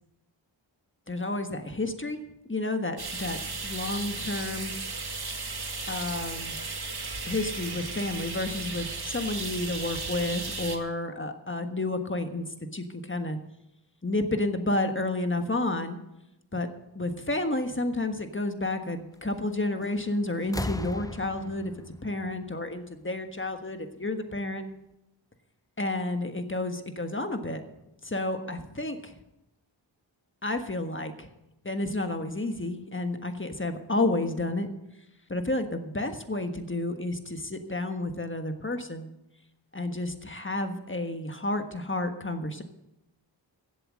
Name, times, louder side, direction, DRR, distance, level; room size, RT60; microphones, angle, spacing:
voice 1, 1.1-4.7 5.9-6.6 7.2-13.4 14.0-16.0 16.5-16.7 16.9-21.7 22.0-24.6 25.8-27.6 28.0-29.1 30.4-31.3 31.6-34.7 35.3-39.1 39.7-42.6, left 2 dB, 25° left, 7 dB, 1.5 m, -31 dB
sound 1, 3.0-10.8, right 3 dB, 55° right, 1.7 m, -35 dB
sound 2, 19.8-20.1 20.4-23.2 24.3-24.4, left 2 dB, 10° left, 0.4 m, -38 dB
15.5 x 7.9 x 6.3 m, 0.90 s
wide cardioid pair, 45°, 46 cm